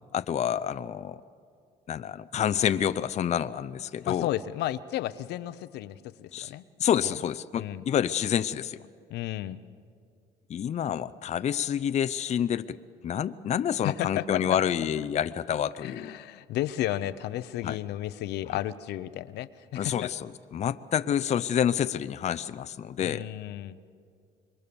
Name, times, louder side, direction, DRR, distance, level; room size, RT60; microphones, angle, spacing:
voice 1, 0.1-1.2 1.9-4.3 6.3-6.5 6.8-8.8 10.5-12.8 13.0-16.1 17.6-17.8 19.8-23.2, left 9 dB, 40° left, 11 dB, 0.6 m, -28 dB
voice 2, 4.0-6.6 7.0-7.2 7.6-7.9 9.1-9.6 13.8-14.6 15.8-20.1 23.0-23.8, left 13 dB, 80° left, 13 dB, 0.8 m, -33 dB
27.0 x 23.0 x 7.1 m, 2.2 s
cardioid pair, 110°, 17 cm